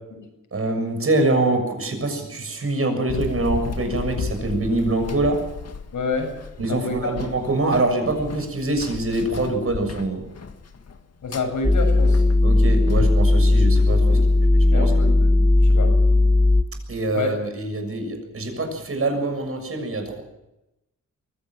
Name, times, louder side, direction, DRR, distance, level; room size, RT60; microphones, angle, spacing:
voice 1, 0.5-5.4 6.6-10.3 12.4-14.9 16.9-20.2, right 2 dB, 45° right, 6 dB, 6.8 m, -24 dB
Run, 3.1-14.5, left 5 dB, 55° left, 1.9 m, -34 dB
voice 2, 5.9-6.3 6.7-6.9 11.2-12.2 14.1-14.2 14.6-15.9 17.1-17.3, left 4 dB, 75° left, 4 dB, 7.5 m, -28 dB
sound 1, 11.6-16.6, left 2 dB, 5° left, 0.7 m, -17 dB
23.0 x 16.0 x 7.5 m, 0.92 s
cardioid pair, 90°, 31 cm